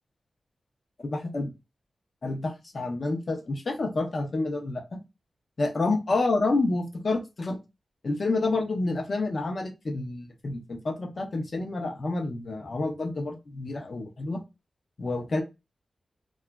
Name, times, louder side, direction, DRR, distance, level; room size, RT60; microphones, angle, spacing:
voice 1, 1.0-1.5 2.2-5.0 5.6-7.6 8.0-14.4 15.0-15.4, left 2 dB, 45° left, 4 dB, 0.6 m, -29 dB
2.9 x 2.3 x 2.2 m, 0.25 s
wide cardioid pair, 150°, 0 cm